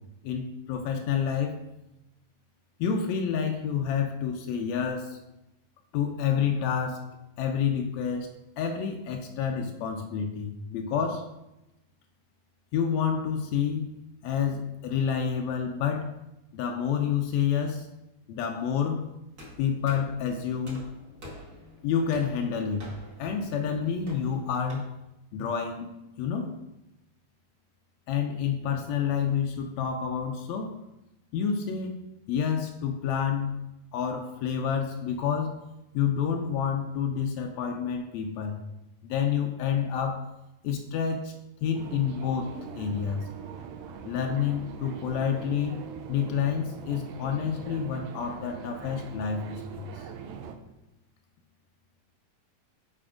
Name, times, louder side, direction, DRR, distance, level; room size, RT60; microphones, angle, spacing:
voice 1, 0.2-1.6 2.8-5.2 5.9-7.0 7.4-8.3 8.6-11.3 12.7-14.0 14.2-16.2 16.5-17.9 18.3-19.1 19.6-20.8 21.8-22.9 23.2-24.9 25.3-25.9 26.2-26.5 28.1-30.7 31.3-33.7 33.9-35.6 35.9-38.6 39.0-40.3 40.6-41.3 41.6-43.3 44.0-50.1, left 7 dB, 90° left, 3 dB, 1.5 m, -29 dB
sound 1, 19.4-24.7, equal, 30° right, 1.5 m, -47 dB
sound 2, 41.7-50.6, right 7 dB, 85° right, 2.4 m, -42 dB
7.5 x 4.4 x 4.9 m, 0.93 s
omnidirectional pair, 3.9 m